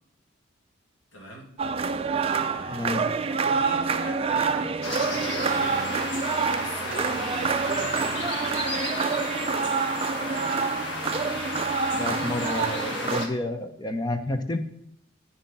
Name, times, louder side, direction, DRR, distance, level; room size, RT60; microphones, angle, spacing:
voice 1, 1.1-1.5 2.1-2.9 3.3-6.1 6.5-8.4, equal, 75° left, 0 dB, 2.3 m, -41 dB
sound 1, 1.6-13.3, right 5 dB, 30° right, 0.4 m, -27 dB
voice 2, 2.7-3.1 11.9-14.6, left 1 dB, 20° left, 7 dB, 0.7 m, -30 dB
sound 2, 4.8-13.3, left 2 dB, 60° left, 1.4 m, -33 dB
9.3 x 6.1 x 4.1 m, 0.76 s
head